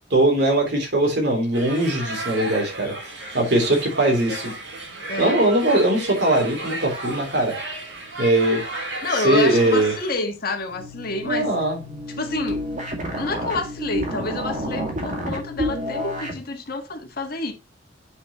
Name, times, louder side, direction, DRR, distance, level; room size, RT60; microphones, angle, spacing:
voice 1, 0.1-2.9 3.3-4.5 5.2-7.5 8.2-8.6 9.2-9.9 11.2-12.0, right 1 dB, 65° right, 3.4 m, -20 dB
sound 1, 1.5-10.1, right 2 dB, 85° right, 4.8 m, -33 dB
voice 2, 5.1-5.4 9.0-11.5 12.2-12.6 13.1-17.5, left 2 dB, 55° left, 1.6 m, -28 dB
sound 2, 10.7-16.4, equal, 45° right, 2.1 m, -29 dB
8.0 x 6.2 x 3.0 m
head